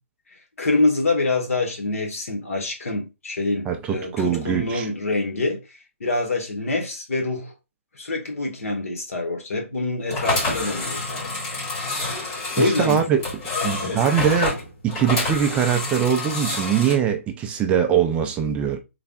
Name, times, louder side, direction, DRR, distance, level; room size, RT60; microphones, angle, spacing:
voice 1, 0.6-5.6 6.0-7.5 7.9-11.3 12.6-13.1 13.6-14.2, left 2 dB, 75° left, 1.4 m, -25 dB
voice 2, 3.7-4.9 12.6-13.2 13.6-14.5 14.8-18.8, right 8 dB, 15° right, 0.4 m, -22 dB
sound 1, 10.1-17.0, left 2 dB, 25° left, 1.4 m, -28 dB
3.9 x 3.3 x 2.4 m
hypercardioid pair, 145°, 8 cm